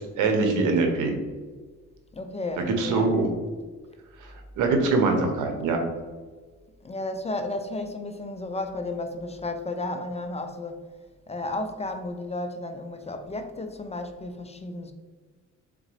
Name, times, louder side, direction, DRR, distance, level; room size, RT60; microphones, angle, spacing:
voice 1, 0.2-1.1 2.6-3.3 4.2-5.8, right 3 dB, 85° right, 4 dB, 0.9 m, -23 dB
voice 2, 2.1-3.2 6.8-10.8 11.3-14.9, left 2 dB, 20° left, 7 dB, 0.4 m, -33 dB
3.8 x 3.7 x 3.2 m, 1.4 s
cardioid pair, 90°, 30 cm